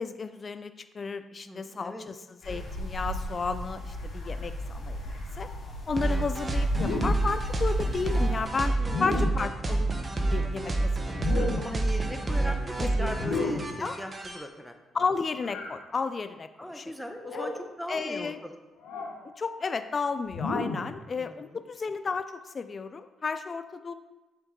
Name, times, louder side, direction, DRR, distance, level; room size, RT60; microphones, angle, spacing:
voice 1, 0.0-5.5 5.9-8.7 9.0-9.9 10.3-11.7 12.1-12.2 12.8-13.2 13.8-13.9 14.9-16.9 17.3-17.5 17.9-18.4 19.4-23.9, left 4 dB, 35° left, 10 dB, 0.3 m, -33 dB
voice 2, 1.4-2.1 8.8-9.1 11.6-14.7 16.6-18.6 21.2-21.6, equal, ahead, 4 dB, 0.9 m, -39 dB
sound 1, 2.4-8.5, equal, 65° left, 2.6 m, -36 dB
sound 2, 6.0-14.4, right 2 dB, 30° right, 1.1 m, -28 dB
sound 3, 6.7-7.4 8.8-9.5 11.1-11.8 13.1-13.8 15.4-15.8 17.2-17.7 18.8-19.2 20.3-21.0, left 3 dB, 90° left, 1.0 m, -32 dB
7.5 x 5.1 x 3.9 m, 1.1 s
cardioid pair, 90°, 0 cm